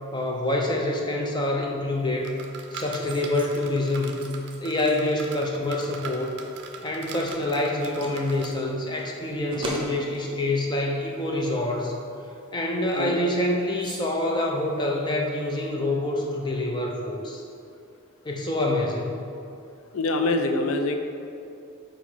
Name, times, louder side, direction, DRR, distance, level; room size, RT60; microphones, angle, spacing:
voice 1, 0.1-2.3 2.7-4.2 4.6-6.4 6.8-11.9 12.5-17.4 18.2-19.2, left 1 dB, 20° left, 0 dB, 0.6 m, -26 dB
sound 1, 1.9-15.7, right 1 dB, 25° right, 0.9 m, -43 dB
sound 2, 2.2-8.5, right 5 dB, 55° right, 0.5 m, -41 dB
voice 2, 19.9-21.0, left 2 dB, 70° left, 6 dB, 0.5 m, -24 dB
5.0 x 4.3 x 5.6 m, 2.6 s
head